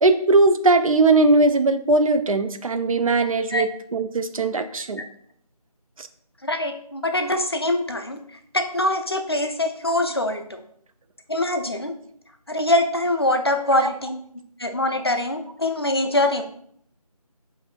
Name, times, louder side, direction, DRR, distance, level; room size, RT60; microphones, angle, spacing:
voice 1, 0.0-5.0 6.0-6.1, right 3 dB, 60° right, 9 dB, 0.4 m, -19 dB
voice 2, 6.4-8.2 8.5-10.6 11.3-11.9 12.5-14.2 14.6-16.4, left 1 dB, 40° left, 5 dB, 0.4 m, -23 dB
5.2 x 2.6 x 2.3 m, 0.65 s
figure-of-eight pair, 170°, 20 cm